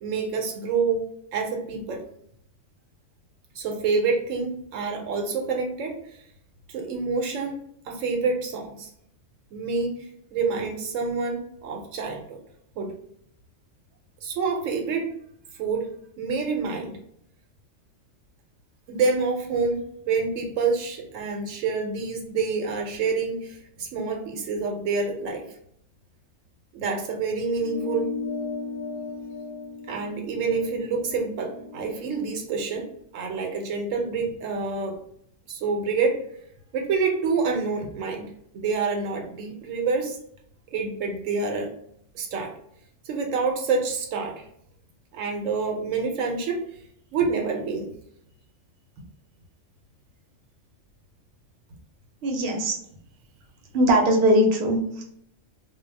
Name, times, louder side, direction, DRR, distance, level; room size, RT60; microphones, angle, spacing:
voice 1, 0.0-1.1 1.3-2.0 3.6-6.2 6.7-7.6 7.8-8.9 9.5-12.4 12.8-12.9 14.2-15.1 15.6-15.9 16.2-17.0 18.9-25.4 26.7-28.1 29.9-32.9 33.1-35.0 35.5-36.2 36.7-40.2 40.7-41.7 42.1-42.5 43.0-44.4 45.1-46.6 47.1-47.9, right 4 dB, 85° right, 2 dB, 1.0 m, -27 dB
sound 1, 27.6-32.4, left 4 dB, 20° left, 0.5 m, -35 dB
voice 2, 52.2-52.8 53.7-55.0, equal, 60° right, 1 dB, 0.8 m, -20 dB
2.3 x 2.0 x 3.2 m, 0.69 s
omnidirectional pair, 1.3 m